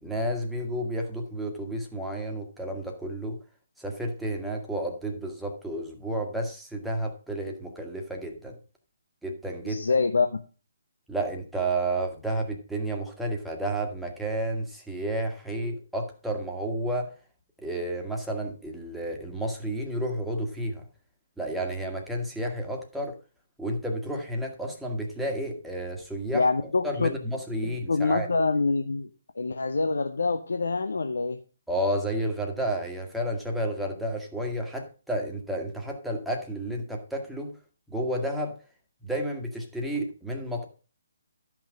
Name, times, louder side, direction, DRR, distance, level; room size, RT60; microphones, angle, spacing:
voice 1, 0.0-3.4 3.8-8.6 9.2-9.8 11.1-17.1 17.6-20.8 21.4-23.1 23.6-26.4 26.8-28.3 31.7-37.5 37.9-38.5 39.0-40.6, right 1 dB, ahead, 1.6 m, -31 dB
voice 2, 9.6-10.3 26.3-27.1 27.6-29.1 29.3-31.4, left 3 dB, 70° left, 0.9 m, -25 dB
12.5 x 6.0 x 5.2 m
figure-of-eight pair, 140°, 0 cm